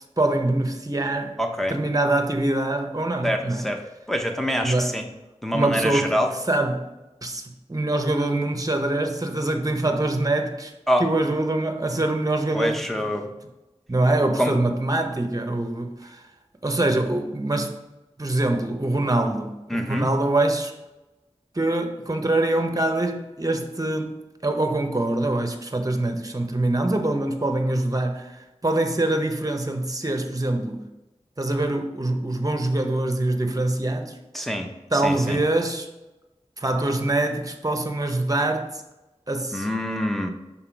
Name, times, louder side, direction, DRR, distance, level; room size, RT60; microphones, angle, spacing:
voice 1, 0.2-1.4 1.7-3.6 4.6-4.9 5.5-6.2 6.5-6.8 7.2-10.7 11.0-13.1 13.9-16.2 16.6-17.7 18.2-20.7 21.5-24.1 24.4-30.8 31.4-34.2 34.9-35.9 36.6-38.8 39.3-39.7, right 2 dB, 30° right, 0.9 m, -24 dB
voice 2, 1.4-1.8 3.2-3.8 4.1-5.0 5.4-6.3 10.9-11.0 12.5-13.3 14.4-14.5 19.7-20.1 34.3-34.7 35.0-35.4 39.5-40.3, equal, ahead, 0.9 m, -25 dB
5.8 x 4.1 x 4.5 m
wide cardioid pair, 40°, 12 cm